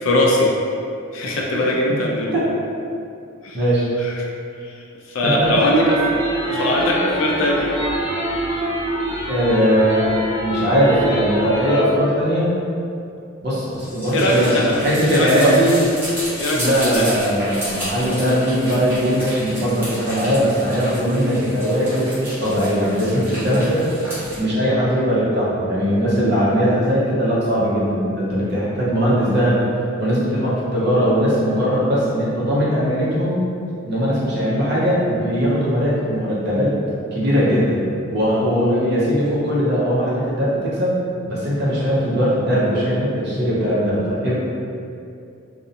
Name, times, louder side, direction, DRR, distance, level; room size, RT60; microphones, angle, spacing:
voice 1, 0.0-0.5 1.1-2.4 3.4-3.6 4.0-4.1 4.6-4.7 5.1-6.0 6.5-7.7 14.1-14.7 15.1-15.5 16.4-17.1, left 1 dB, 70° left, -2 dB, 0.4 m, -20 dB
voice 2, 3.5-3.9 5.2-5.3 9.3-12.5 13.4-15.8 16.5-23.8 24.4-29.6 30.0-33.4 33.9-36.7 37.1-37.8 38.1-41.0 41.3-44.3, equal, 50° right, -7 dB, 0.6 m, -19 dB
sound 1, 5.4-11.8, right 1 dB, 85° right, 0.7 m, -25 dB
sound 2, 13.7-24.4, equal, 10° right, 0.7 m, -32 dB
2.5 x 2.0 x 2.6 m, 2.5 s
head